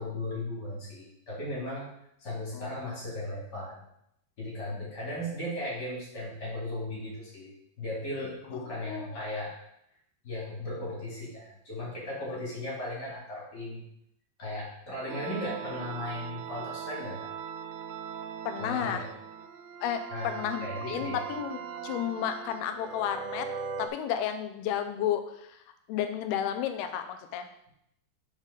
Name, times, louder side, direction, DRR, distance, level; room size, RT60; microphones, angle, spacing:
voice 1, 0.0-1.9 2.2-3.8 4.4-7.5 7.8-9.6 10.2-13.8 14.4-17.2 18.6-19.1 20.1-21.2, left 1 dB, 30° left, -6 dB, 2.6 m, -36 dB
voice 2, 2.5-3.0 8.8-9.2 18.5-19.1 19.8-23.5 23.8-25.6 25.9-27.5, left 9 dB, 85° left, 8 dB, 2.6 m, -32 dB
sound 1, 15.1-23.9, right 6 dB, 80° right, 2.1 m, -40 dB
7.3 x 5.0 x 3.8 m, 0.76 s
omnidirectional pair, 4.4 m